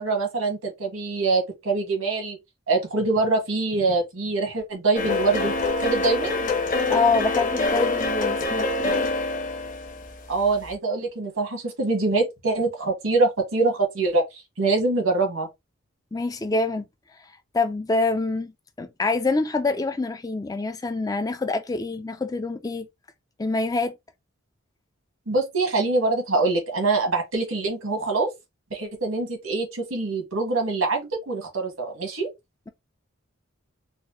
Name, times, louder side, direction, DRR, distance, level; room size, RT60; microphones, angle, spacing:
voice 1, 0.0-2.4 2.7-6.5 10.3-15.5 25.3-28.3 28.7-32.3, right 3 dB, 80° right, 1.5 m, -24 dB
sound 1, 4.9-10.7, left 3 dB, 40° left, 0.8 m, -25 dB
voice 2, 6.9-9.1 16.1-16.8 17.5-18.5 18.8-22.9 23.4-23.9, left 3 dB, 15° left, 0.3 m, -26 dB
4.1 x 2.1 x 3.0 m
head